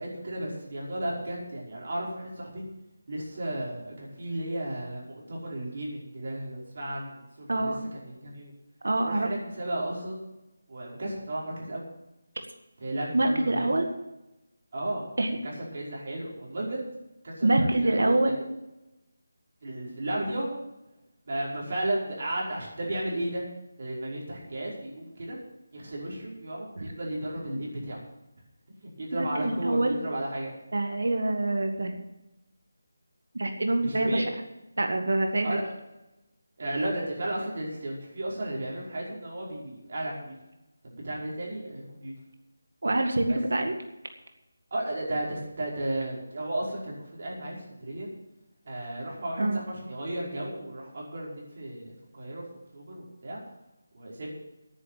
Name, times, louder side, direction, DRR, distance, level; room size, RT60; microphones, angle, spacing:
voice 1, 0.0-2.6 3.1-7.7 8.2-8.5 9.0-10.2 10.7-11.9 12.8-13.7 14.7-15.2 15.4-16.8 17.2-18.3 19.6-20.5 21.3-23.4 23.8-25.4 25.7-28.0 29.0-30.5 33.8-34.3 35.4-35.6 36.6-40.3 40.8-42.1 43.3-43.4 44.7-47.5 47.8-48.1 48.7-52.4 52.7-53.4 53.9-54.3, right 1 dB, 50° right, -4 dB, 5.2 m, -34 dB
voice 2, 7.5-7.8 8.8-9.3 13.1-13.9 15.2-15.3 17.4-18.4 26.8-26.9 29.2-30.0 30.7-31.9 33.3-34.2 34.8-35.5 42.8-43.8 49.4-49.6, right 2 dB, 75° right, 5 dB, 2.0 m, -25 dB
11.0 x 9.7 x 7.6 m, 0.95 s
figure-of-eight pair, 165°, 0 cm